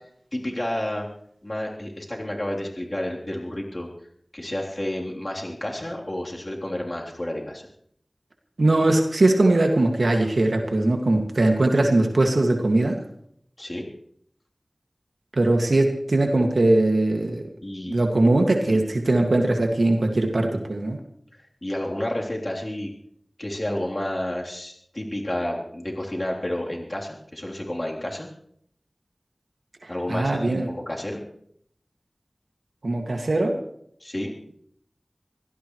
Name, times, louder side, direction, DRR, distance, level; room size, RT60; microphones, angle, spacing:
voice 1, 0.3-1.1 1.4-3.9 4.3-7.7 13.6-13.9 17.6-18.0 18.7-18.8 21.3-22.9 23.4-28.3 29.9-31.2 34.0-34.3, left 1 dB, 35° left, -2 dB, 3.4 m, -30 dB
voice 2, 8.6-13.0 15.3-17.4 17.9-21.0 29.8-30.7 32.8-33.6, right 2 dB, 85° right, 2 dB, 2.0 m, -20 dB
25.0 x 17.0 x 3.2 m, 0.68 s
wide cardioid pair, 50°, 0 cm